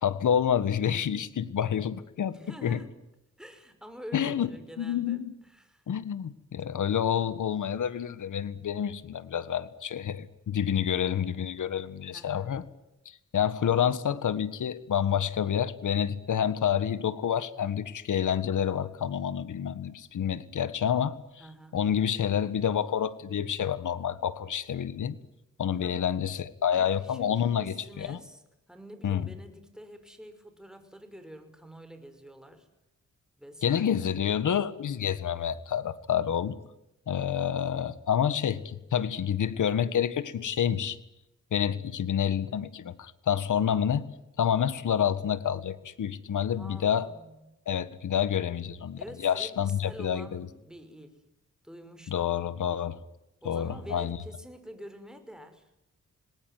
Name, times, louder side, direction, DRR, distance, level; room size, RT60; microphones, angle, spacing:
voice 1, 0.0-2.8 4.1-4.5 4.8-5.3 5.9-12.6 13.0-21.2 21.7-25.2 25.6-28.2 29.0-29.3 33.6-36.6 37.1-41.0 41.5-44.1 44.4-47.1 47.7-50.4 52.1-53.0 53.4-54.2, left 8 dB, 85° left, 14 dB, 1.7 m, -28 dB
voice 2, 2.3-2.9 3.4-5.9 12.1-12.6 21.4-21.8 25.8-26.2 26.7-32.7 33.4-34.1 46.5-47.6 49.0-51.2 51.6-52.3 53.4-55.7, equal, ahead, 8 dB, 5.7 m, -47 dB
27.0 x 19.5 x 9.8 m, 0.90 s
cardioid pair, 75°, 30 cm